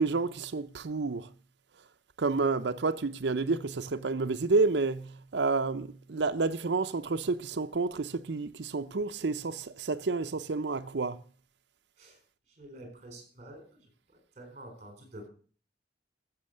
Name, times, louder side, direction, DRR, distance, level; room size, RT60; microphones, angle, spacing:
voice 1, 0.0-1.3 2.2-11.2, right 3 dB, 85° right, 0.7 m, -30 dB
voice 2, 12.5-15.3, right 1 dB, 40° right, 4.4 m, -49 dB
14.5 x 6.9 x 6.5 m
head